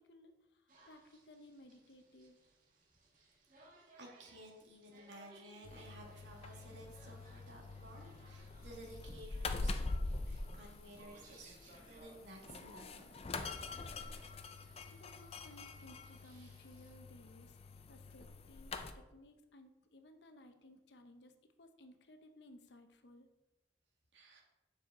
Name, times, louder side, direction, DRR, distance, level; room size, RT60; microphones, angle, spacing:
voice 1, 0.0-2.4 14.9-17.6 17.9-21.3 21.6-23.3, left 1 dB, 70° left, 7 dB, 0.8 m, -59 dB
sound 1, 0.7-16.9, right 2 dB, 50° right, 1.7 m, -65 dB
voice 2, 4.0-13.2 24.1-24.4, right 1 dB, 80° right, -1 dB, 1.9 m, -55 dB
sound 2, 5.6-18.9, left 3 dB, 35° left, 0.5 m, -44 dB
7.4 x 6.3 x 3.7 m, 1.0 s
head